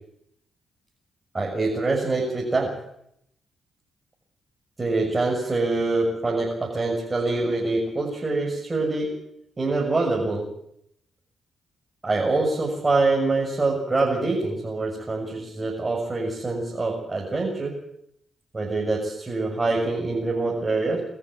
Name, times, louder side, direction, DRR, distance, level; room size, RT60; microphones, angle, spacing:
voice 1, 1.3-2.7 4.8-9.1 9.6-10.5 12.0-17.8 18.5-21.0, right 3 dB, 30° right, -2 dB, 6.8 m, -25 dB
24.0 x 13.5 x 9.1 m, 0.76 s
hypercardioid pair, 45°, 0 cm